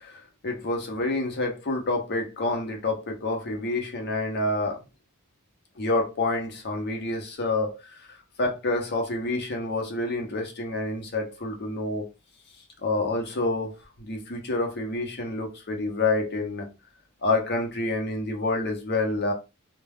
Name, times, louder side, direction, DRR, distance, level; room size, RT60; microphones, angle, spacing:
voice 1, 0.0-4.8 5.8-8.0 8.4-12.1 12.8-16.7 17.2-19.3, left 2 dB, 50° left, 0.7 m, -28 dB
2.3 x 2.2 x 3.4 m
head